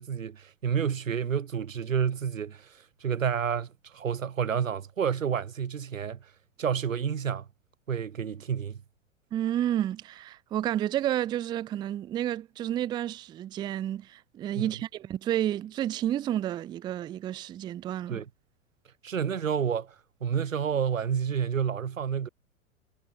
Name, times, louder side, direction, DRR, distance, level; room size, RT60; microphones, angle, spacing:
voice 1, 0.0-6.2 6.6-7.5 7.9-8.8 14.5-14.8 18.1-18.3 19.0-19.9 20.2-22.3, right 7 dB, 75° right, 1.6 m, -29 dB
voice 2, 9.3-18.2, right 12 dB, 10° right, 0.4 m, -30 dB
figure-of-eight pair, 95°, 39 cm